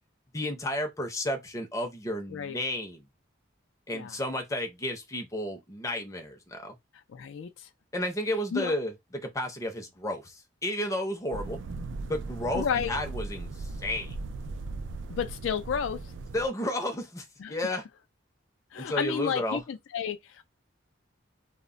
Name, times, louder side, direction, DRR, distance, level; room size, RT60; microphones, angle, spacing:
voice 1, 0.3-3.0 3.9-6.7 7.9-8.9 9.2-11.6 12.1-14.1 16.3-17.8 18.8-19.6, left 1 dB, 15° left, 0.5 m, -32 dB
voice 2, 7.1-7.7 8.5-8.7 12.5-13.0 15.1-16.0 17.4-17.6 18.7-20.4, left 7 dB, 75° left, 0.3 m, -31 dB
sound 1, 11.3-16.5, right 3 dB, 70° right, 0.3 m, -38 dB
2.1 x 2.1 x 3.6 m
head